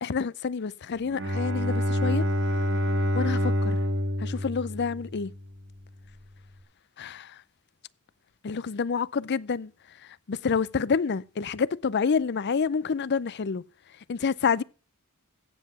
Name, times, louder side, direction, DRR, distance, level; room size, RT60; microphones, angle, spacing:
voice 1, 0.0-2.3 3.1-3.8 4.2-5.3 7.0-7.3 8.4-9.7 10.3-13.6 14.1-14.6, left 5 dB, 50° left, 0.5 m, -28 dB
Bowed string instrument, 1.0-5.6, left 1 dB, 60° right, 1.8 m, -27 dB
15.5 x 7.5 x 5.8 m
head